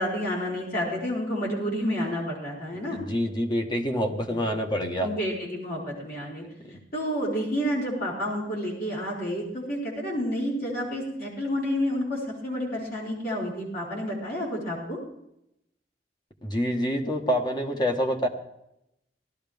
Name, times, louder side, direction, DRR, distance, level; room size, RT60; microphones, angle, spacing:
voice 1, 0.0-3.0 5.0-6.4 6.9-15.0, equal, 55° left, -5 dB, 4.4 m, -30 dB
voice 2, 2.9-5.1 6.7-6.8 16.4-18.3, equal, 25° left, 2 dB, 1.5 m, -27 dB
18.0 x 13.0 x 3.6 m, 0.81 s
head